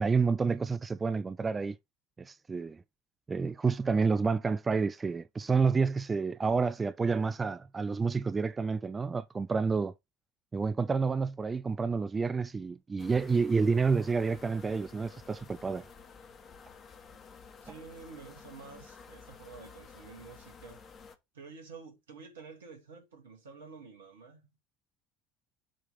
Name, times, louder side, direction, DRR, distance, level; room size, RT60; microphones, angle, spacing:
voice 1, 0.0-1.8 2.2-2.8 3.3-9.9 10.5-15.9, right 4 dB, 25° right, 0.3 m, -29 dB
sound 1, 13.0-21.2, left 5 dB, 40° left, 1.3 m, -52 dB
voice 2, 17.6-20.8 21.3-24.6, right 5 dB, 75° right, 2.1 m, -50 dB
7.7 x 3.1 x 5.0 m
figure-of-eight pair, 60°, 0 cm